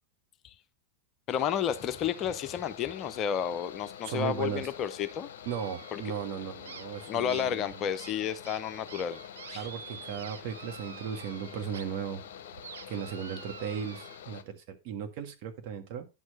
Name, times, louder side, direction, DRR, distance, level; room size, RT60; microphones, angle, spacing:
Mechanical fan, 1.3-14.4, left 9 dB, 55° left, 0.9 m, -47 dB
voice 1, 1.3-5.3 5.9-6.0 7.1-9.2 9.5-9.7, left 9 dB, 30° left, 0.7 m, -31 dB
voice 2, 4.0-4.7 5.4-7.8 9.5-12.2 12.9-16.1, right 7 dB, 45° right, 1.6 m, -36 dB
sound 1, 5.5-6.3 6.6-11.8 12.2-14.2, right 8 dB, 65° right, 0.6 m, -48 dB
9.7 x 6.4 x 4.2 m
figure-of-eight pair, 90°, 0 cm